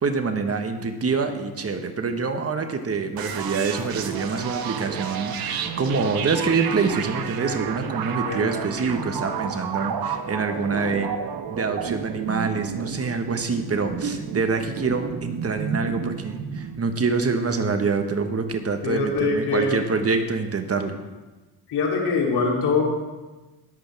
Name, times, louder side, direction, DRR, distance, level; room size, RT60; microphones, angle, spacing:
voice 1, 0.0-11.2 11.5-21.0, right 4 dB, 35° right, 6 dB, 1.3 m, -26 dB
sound 1, 3.2-16.8, right 7 dB, 65° right, 1.1 m, -31 dB
voice 2, 8.1-8.4 18.8-19.8 21.7-22.8, left 4 dB, 75° left, -2 dB, 3.3 m, -23 dB
20.0 x 8.2 x 3.5 m, 1.2 s
cardioid pair, 85°, 40 cm